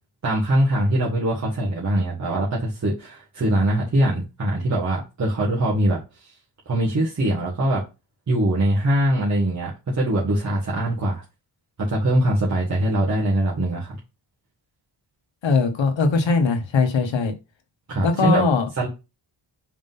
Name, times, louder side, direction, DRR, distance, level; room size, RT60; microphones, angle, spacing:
voice 1, 0.2-6.3 6.6-7.8 8.3-11.2 11.9-14.0 17.9-18.5 18.8-18.9, right 1 dB, 40° right, 1.7 m, -22 dB
voice 2, 15.4-17.3 18.0-18.7, left 4 dB, 75° left, 1.4 m, -20 dB
5.1 x 3.7 x 5.4 m
wide cardioid pair, 165°, 45 cm